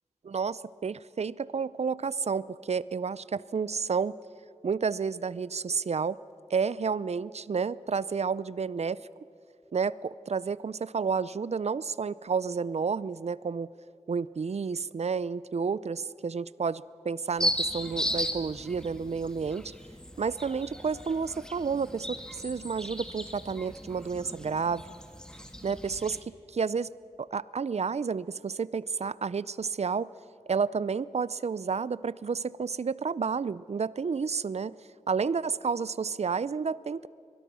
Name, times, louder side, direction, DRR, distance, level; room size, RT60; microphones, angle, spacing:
voice 1, 0.2-4.1 4.6-6.2 6.5-9.0 9.7-13.7 14.1-19.7 20.2-24.8 25.6-26.2 26.5-26.9 27.2-30.1 30.5-34.7 35.1-37.1, right 5 dB, 65° right, 19 dB, 0.5 m, -30 dB
sound 1, 17.4-26.2, equal, 5° left, 1.7 m, -36 dB
23.0 x 20.5 x 6.2 m, 2.7 s
wide cardioid pair, 75°, 12 cm